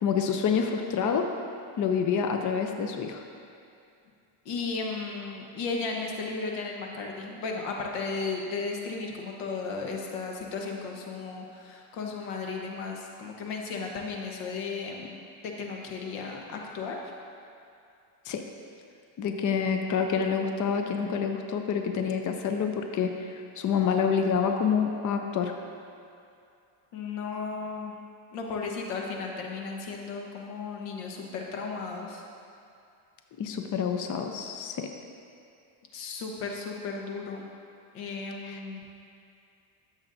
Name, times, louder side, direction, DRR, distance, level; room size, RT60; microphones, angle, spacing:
voice 1, 0.0-1.3 1.8-3.2 18.3-18.4 19.2-25.5 33.4-34.9 38.4-38.6, left 6 dB, 40° left, 4 dB, 0.7 m, -27 dB
voice 2, 4.4-17.1 26.9-27.9 28.3-32.2 35.9-37.5 37.9-38.8, left 4 dB, 85° left, 1 dB, 1.3 m, -35 dB
13.0 x 7.3 x 2.7 m, 2.5 s
cardioid pair, 105°, 50 cm